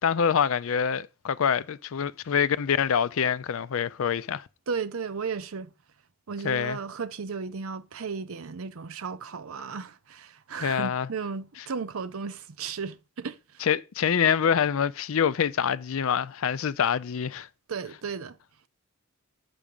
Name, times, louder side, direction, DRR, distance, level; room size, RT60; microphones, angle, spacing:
voice 1, 0.0-4.4 6.4-6.8 10.6-11.1 13.6-17.5, left 7 dB, 65° left, 0.4 m, -25 dB
voice 2, 4.7-5.7 6.3-13.6 17.7-18.4, right 5 dB, 70° right, 0.6 m, -35 dB
8.6 x 6.0 x 5.3 m
head